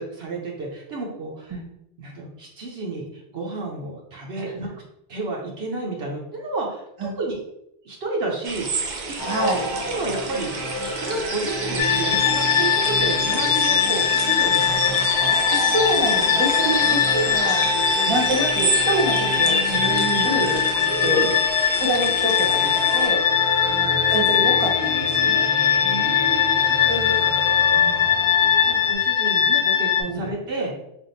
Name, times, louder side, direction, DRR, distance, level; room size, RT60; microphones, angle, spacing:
voice 1, 0.0-1.6 2.0-4.7 5.1-6.8 7.2-7.4 7.8-9.6 9.9-10.6 11.0-15.4 20.8-21.3 23.6-24.0 25.8-27.6 28.6-30.8, right 2 dB, 70° right, -2 dB, 1.0 m, -31 dB
voice 2, 4.4-4.7 7.0-7.1 9.2-9.6 13.9-14.0 15.5-17.8 18.1-20.6 21.0-21.2 21.7-23.2 24.1-25.5 26.9-27.3 27.8-28.0 30.1-30.2, right 1 dB, 30° right, -1 dB, 1.0 m, -26 dB
sound 1, 8.4-23.1, right 4 dB, 50° right, 0.6 m, -30 dB
sound 2, 9.2-28.9, equal, 20° left, 0.5 m, -31 dB
sound 3, 11.8-30.0, left 8 dB, 80° left, 0.9 m, -21 dB
3.5 x 2.5 x 3.9 m, 0.80 s
omnidirectional pair, 1.1 m